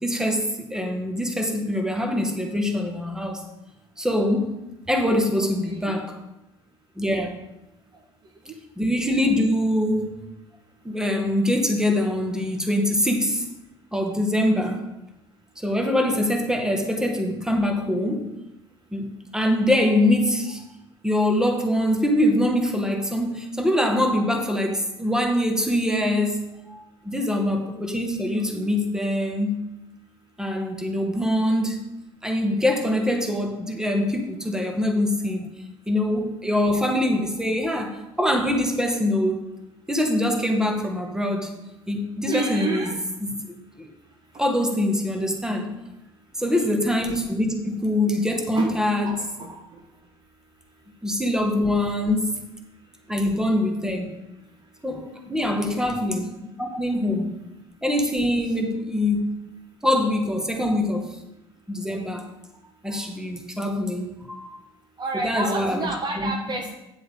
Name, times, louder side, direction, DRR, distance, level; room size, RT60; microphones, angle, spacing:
voice 1, 0.0-3.4 4.0-4.5 4.9-6.1 7.0-7.4 8.8-10.1 10.8-13.5 13.9-14.8 15.6-18.3 18.9-19.1 19.3-20.6 21.0-29.6 30.4-31.8 32.2-35.4 35.9-39.4 39.9-41.5 41.9-42.9 43.2-43.9 44.4-45.8 46.4-49.2 51.0-52.4 53.1-54.2 54.8-56.3 56.6-57.3 57.8-59.4 59.8-61.2 61.7-62.3 62.8-64.5 65.2-65.9 66.2-66.3, left 1 dB, 5° right, 3 dB, 1.8 m, -24 dB
voice 2, 5.4-5.9 42.2-43.0 46.4-46.7 48.5-49.6 55.4-55.9 65.0-66.7, right 3 dB, 30° right, 2 dB, 1.4 m, -31 dB
9.3 x 7.6 x 3.8 m, 0.93 s
figure-of-eight pair, 60°, 14 cm